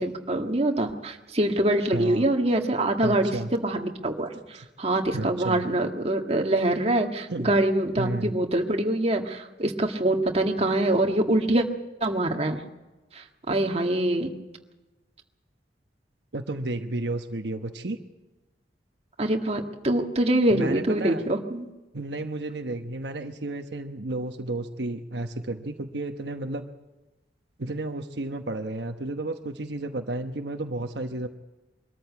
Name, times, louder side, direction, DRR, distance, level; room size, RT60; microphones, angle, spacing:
voice 1, 0.0-11.7 12.0-12.6 13.1-14.3 19.2-21.7, right 1 dB, 35° right, 3 dB, 1.7 m, -24 dB
voice 2, 1.9-2.3 3.0-3.5 4.5-4.6 5.1-5.6 7.3-7.5 8.0-8.3 16.3-18.0 20.5-21.2 21.9-26.7 27.6-31.3, right 2 dB, 70° right, 5 dB, 1.1 m, -32 dB
23.5 x 13.5 x 8.3 m, 1.1 s
head